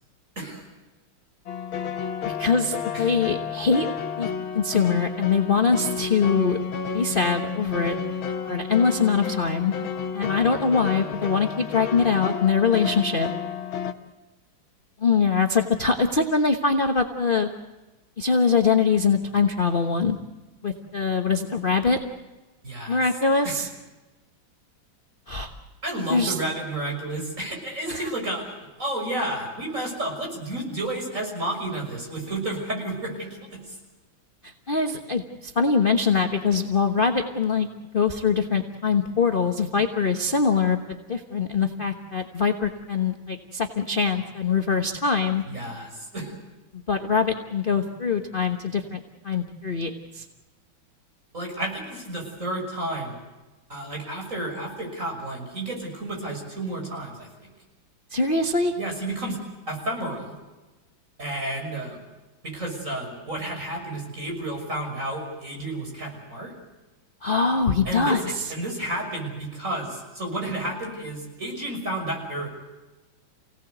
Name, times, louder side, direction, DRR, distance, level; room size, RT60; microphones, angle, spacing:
voice 1, 0.4-0.7 2.9-3.1 22.6-23.0 23.4-23.6 25.8-33.8 45.5-46.3 51.3-53.2 53.7-57.5 58.8-59.4 59.7-60.4 61.2-62.0 62.4-66.5 67.8-72.5, right 1 dB, 40° right, 1 dB, 6.7 m, -31 dB
sound 1, 1.5-13.9, left 7 dB, 80° left, 2.1 m, -31 dB
voice 2, 2.2-3.9 4.2-4.3 4.5-6.6 6.9-7.9 8.4-9.7 10.1-13.3 15.0-17.5 18.2-20.2 20.6-22.0 22.9-23.7 25.3-25.5 26.1-26.4 27.9-28.1 34.4-37.7 37.9-45.4 46.7-49.0 49.2-50.2 58.1-58.7 67.2-68.2, left 5 dB, 30° left, 5 dB, 1.2 m, -23 dB
28.5 x 18.0 x 8.0 m, 1.2 s
omnidirectional pair, 2.2 m